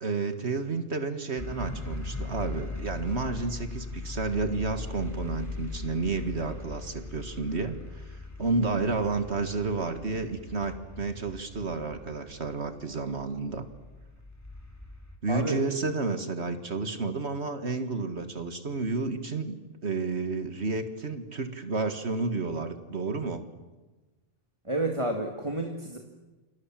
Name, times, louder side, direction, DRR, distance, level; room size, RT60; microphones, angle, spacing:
voice 1, 0.0-13.7 15.2-19.6 19.8-23.4, right 3 dB, 60° right, 9 dB, 2.0 m, -31 dB
sound 1, 1.4-15.2, left 2 dB, 15° left, 3.3 m, -40 dB
voice 2, 15.3-15.6 24.7-26.0, right 2 dB, 25° right, 3 dB, 2.2 m, -30 dB
29.5 x 26.0 x 7.5 m, 1.2 s
omnidirectional pair, 1.3 m